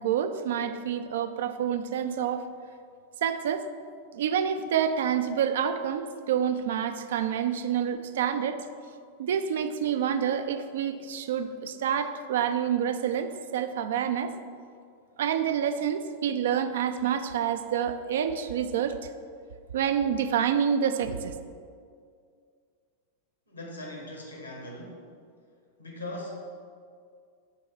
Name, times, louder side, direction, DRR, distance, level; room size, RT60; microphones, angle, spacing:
voice 1, 0.0-2.4 3.2-3.7 4.1-8.6 9.2-14.3 15.2-19.0 19.7-21.3, right 8 dB, 60° right, 10 dB, 0.3 m, -28 dB
voice 2, 23.5-25.0 25.8-26.3, left 1 dB, 80° left, -1 dB, 1.3 m, -39 dB
7.5 x 3.0 x 4.6 m, 2.2 s
figure-of-eight pair, 90°, 0 cm